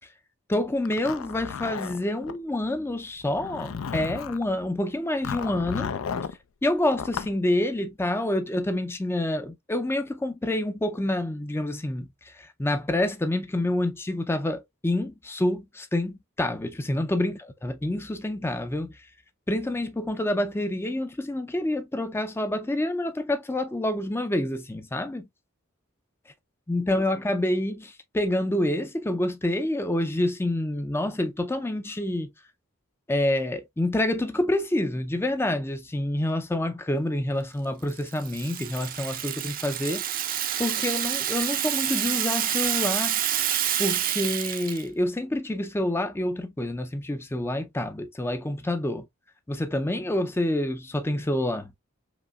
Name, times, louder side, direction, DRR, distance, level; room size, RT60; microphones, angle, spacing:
voice 1, 0.5-5.9 6.6-19.1 19.5-25.3 26.7-32.3 33.1-40.0 40.6-43.2 43.8-49.1 49.5-51.7, left 1 dB, 10° left, 0.4 m, -27 dB
Zipper (clothing), 0.9-2.4 3.2-4.4 5.2-6.4 6.9-7.3, left 6 dB, 80° left, 0.4 m, -33 dB
Rattle (instrument), 37.9-44.8, right 11 dB, 45° right, 0.5 m, -28 dB
5.1 x 2.9 x 2.3 m
head